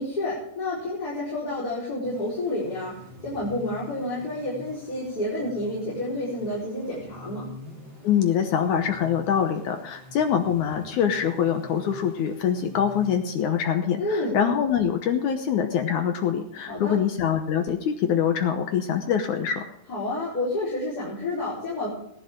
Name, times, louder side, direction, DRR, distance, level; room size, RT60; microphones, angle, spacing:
voice 1, 0.0-7.5 14.0-14.3 16.7-16.9 19.9-21.9, left 1 dB, 25° left, -8 dB, 4.6 m, -29 dB
sound 1, 2.0-13.8, left 2 dB, 25° right, 5.0 m, -47 dB
voice 2, 8.0-19.7, left 8 dB, 70° left, 6 dB, 1.9 m, -24 dB
19.0 x 11.0 x 3.7 m, 0.78 s
omnidirectional pair, 4.5 m